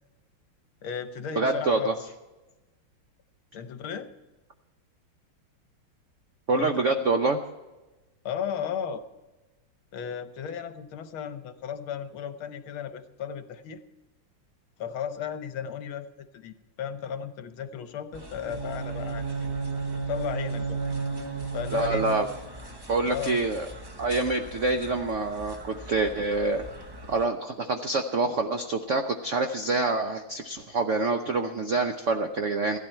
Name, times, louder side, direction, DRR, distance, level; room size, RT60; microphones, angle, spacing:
voice 1, 0.8-2.1 3.5-4.1 6.6-6.7 8.3-9.0 9.9-13.8 14.8-19.3 20.1-20.8 21.5-22.1 23.0-23.5, left 8 dB, 75° left, 10 dB, 1.7 m, -35 dB
voice 2, 1.4-1.9 6.5-7.4 21.7-22.3 22.9-23.7 24.0-26.6 27.1-32.8, right 3 dB, 65° right, 5 dB, 0.7 m, -26 dB
sound 1, 18.1-27.3, equal, 35° right, 0.4 m, -44 dB
Bowed string instrument, 18.4-22.6, right 4 dB, 85° right, 2.8 m, -32 dB
16.0 x 12.0 x 4.4 m, 1.1 s
omnidirectional pair, 2.3 m